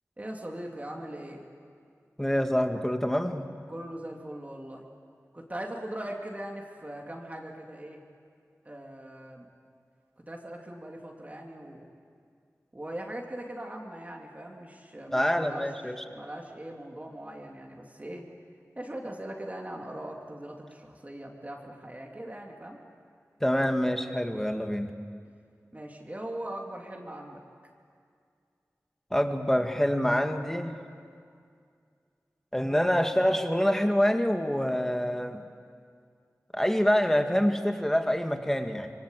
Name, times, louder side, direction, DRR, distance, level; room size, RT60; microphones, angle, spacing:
voice 1, 0.2-1.5 3.7-4.8 5.3-8.0 8.6-9.5 10.3-11.9 12.7-15.7 16.1-18.3 18.7-22.8 25.7-27.4, right 1 dB, 25° right, 0 dB, 3.1 m, -40 dB
voice 2, 2.2-3.5 15.1-16.0 23.4-24.9 29.1-30.8 32.5-35.4 36.5-38.9, equal, 5° left, 5 dB, 2.0 m, -26 dB
25.5 x 24.0 x 8.3 m, 2.3 s
wide cardioid pair, 65°, 6 cm